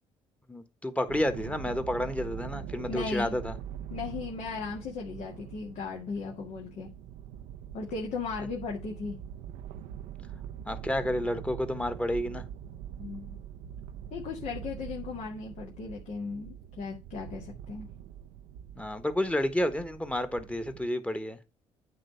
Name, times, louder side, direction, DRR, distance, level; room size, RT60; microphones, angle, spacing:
voice 1, 0.5-3.5 10.7-12.4 18.8-21.4, left 1 dB, 10° left, 1.4 m, -30 dB
sound 1, 1.1-20.9, right 9 dB, 80° right, 0.6 m, -43 dB
voice 2, 2.9-3.4 3.9-6.9 7.7-9.2 13.0-13.4 14.1-17.9, left 4 dB, 65° left, 1.9 m, -37 dB
9.1 x 3.4 x 5.7 m
supercardioid pair, 65°, 13 cm